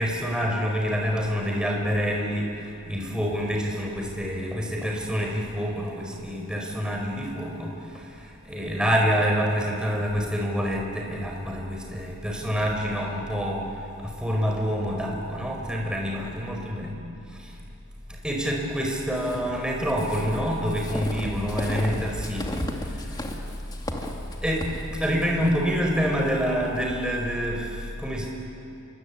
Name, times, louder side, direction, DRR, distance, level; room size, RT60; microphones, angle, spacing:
voice 1, 0.0-17.6 18.1-23.2 24.0-24.1 24.4-28.3, equal, 5° right, 0 dB, 4.9 m, -27 dB
sound 1, 19.1-27.0, left 1 dB, 20° left, 2.3 m, -35 dB
28.5 x 24.0 x 8.7 m, 2.6 s
head